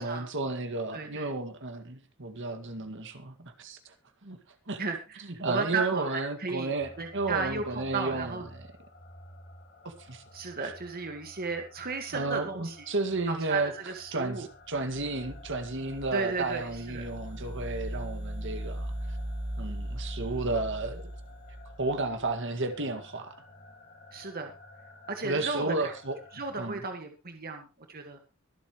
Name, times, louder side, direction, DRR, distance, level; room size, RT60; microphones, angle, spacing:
voice 1, 0.0-3.9 4.2-4.4 4.7-4.8 5.4-8.4 9.8-10.2 12.1-13.7 14.1-19.2 19.6-21.0 21.8-23.4 25.2-26.2 26.6-26.8, right 2 dB, 60° right, 2.0 m, -32 dB
voice 2, 0.9-1.3 4.8-8.5 10.3-12.8 13.3-14.5 16.1-17.0 24.1-24.5 25.1-25.9 26.3-28.2, right 4 dB, 45° right, 1.7 m, -35 dB
sound 1, 6.8-26.7, left 2 dB, 50° left, 2.7 m, -53 dB
sound 2, 14.7-22.3, right 1 dB, 90° right, 3.9 m, -38 dB
23.5 x 8.4 x 3.1 m
head